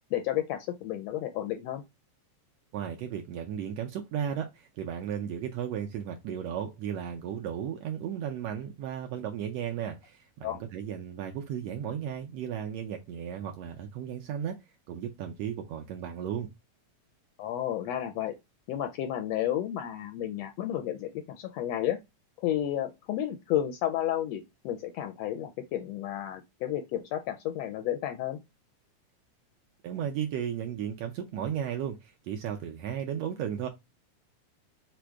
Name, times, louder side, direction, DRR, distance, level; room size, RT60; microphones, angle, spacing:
voice 1, 0.1-1.8 10.4-10.6 17.4-18.3 18.7-22.0 22.4-28.4, left 12 dB, 80° left, 1.5 m, -32 dB
voice 2, 2.7-14.6 14.9-16.5 29.8-33.7, right 9 dB, 75° right, 1.6 m, -35 dB
5.0 x 2.1 x 4.5 m
omnidirectional pair, 3.3 m